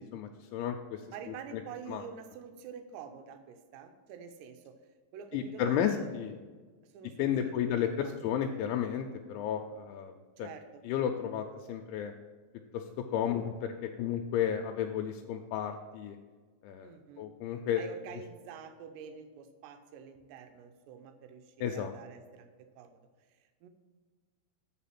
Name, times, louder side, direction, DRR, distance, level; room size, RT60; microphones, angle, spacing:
voice 1, 0.0-1.0 1.9-2.0 5.3-6.3 7.2-10.1 10.4-10.5 10.9-12.1 12.7-16.2 16.6-16.9 17.2-17.8 21.6-21.9, left 9 dB, 85° left, 3 dB, 2.9 m, -32 dB
voice 2, 1.1-4.8 5.1-6.1 6.8-8.3 10.4-10.8 16.8-17.3 17.8-23.0 23.3-23.7, right 7 dB, 80° right, 7 dB, 2.7 m, -48 dB
8.3 x 5.5 x 5.8 m, 1.4 s
omnidirectional pair, 5.3 m